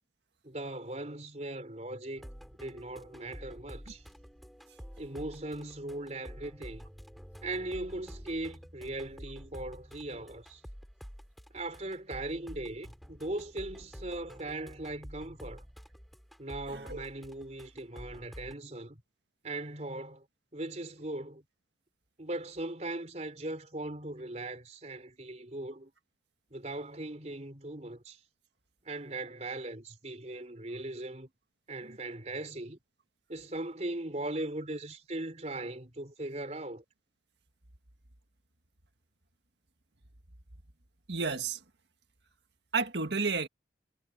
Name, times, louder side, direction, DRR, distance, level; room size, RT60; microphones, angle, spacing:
voice 1, 0.4-2.3 2.6-4.0 5.0-6.9 7.4-10.6 11.5-15.6 16.4-19.0 19.4-20.3 20.5-21.4 22.2-25.9 26.5-28.2 28.8-31.3 31.7-32.8 33.3-36.8, right 2 dB, 35° right, 3.8 m, -39 dB
sound 1, 2.2-18.5, equal, ahead, 5.5 m, -49 dB
voice 2, 16.7-17.1 31.8-32.0 41.1-41.6 42.7-43.5, right 4 dB, 70° right, 1.6 m, -32 dB
head